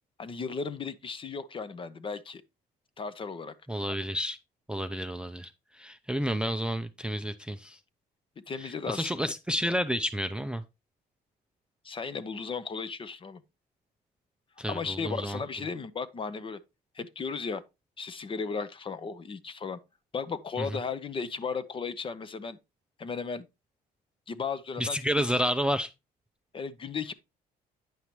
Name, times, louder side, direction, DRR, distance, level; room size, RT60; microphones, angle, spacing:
voice 1, 0.2-2.4 3.0-3.5 8.5-9.3 11.8-13.4 14.7-16.6 16.9-17.6 18.0-19.8 20.1-22.6 23.0-23.5 24.3-25.0 25.3-25.4 26.5-27.1, left 5 dB, 30° left, 0.7 m, -35 dB
voice 2, 3.7-4.4 4.7-5.5 5.8-7.8 8.6-10.6 14.6-15.4 24.8-25.9, equal, 5° right, 0.4 m, -30 dB
9.4 x 5.6 x 3.1 m
cardioid pair, 110°, 17 cm